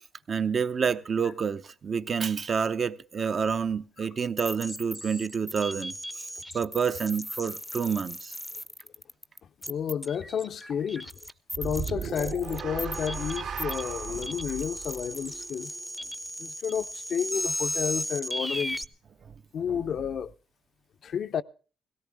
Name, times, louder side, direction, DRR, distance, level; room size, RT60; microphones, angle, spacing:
voice 1, 0.3-5.9 6.5-8.3 14.1-14.2 19.7-19.8, right 6 dB, 45° right, 0.7 m, -28 dB
sound 1, 4.4-18.8, equal, 5° left, 0.6 m, -36 dB
voice 2, 9.7-11.1 11.6-15.7 16.4-18.8 19.5-20.3 21.0-21.4, left 8 dB, 60° left, 0.6 m, -31 dB
sound 2, 11.5-15.9, right 6 dB, 75° right, 3.1 m, -37 dB
17.5 x 17.0 x 3.4 m
cardioid pair, 90°, 0 cm